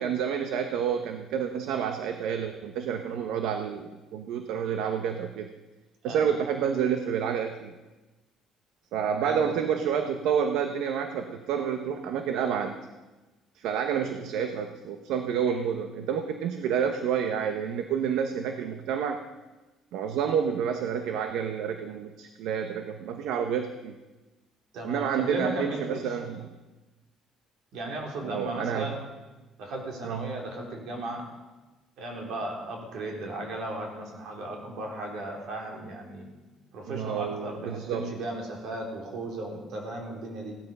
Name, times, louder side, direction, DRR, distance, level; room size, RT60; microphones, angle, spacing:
voice 1, 0.0-5.5 6.0-7.7 8.9-12.8 13.5-19.2 19.9-23.9 24.8-26.5 28.2-29.0 30.0-30.3 36.9-38.1, right 7 dB, 85° right, 7 dB, 0.9 m, -29 dB
voice 2, 24.7-26.1 27.7-29.0 29.6-31.3 32.0-36.3 36.7-40.6, right 1 dB, 65° right, 1 dB, 3.6 m, -36 dB
16.5 x 12.0 x 5.5 m, 1.2 s
cardioid pair, 155°, 0 cm